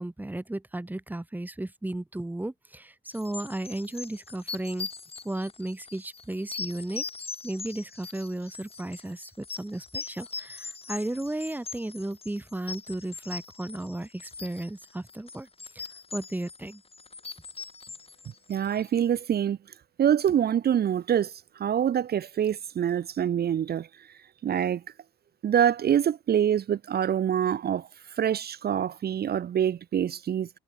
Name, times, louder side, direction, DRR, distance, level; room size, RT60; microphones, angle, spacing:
voice 1, 0.0-4.9 5.2-7.0 7.4-15.5 15.7-15.8 16.1-16.8, right 1 dB, 10° right, 1.6 m, -34 dB
sound 1, 3.1-19.0, left 4 dB, 30° left, 3.1 m, -41 dB
voice 2, 18.5-19.6 20.0-24.1 24.4-24.8 25.4-30.5, right 9 dB, 55° right, 1.0 m, -25 dB
cardioid pair, 90°, 20 cm